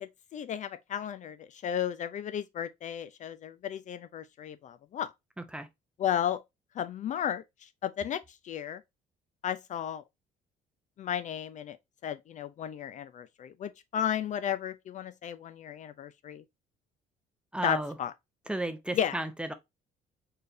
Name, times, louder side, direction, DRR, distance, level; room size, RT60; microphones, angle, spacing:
voice 1, 0.0-5.1 6.0-6.4 6.8-8.8 9.4-10.0 11.0-11.8 12.0-16.4 17.6-18.1 18.9-19.1, left 9 dB, 45° left, 0.4 m, -34 dB
voice 2, 5.4-5.7 17.5-18.0 18.5-19.5, right 1 dB, 5° right, 0.6 m, -34 dB
4.4 x 3.2 x 2.6 m
cardioid pair, 110°, 17 cm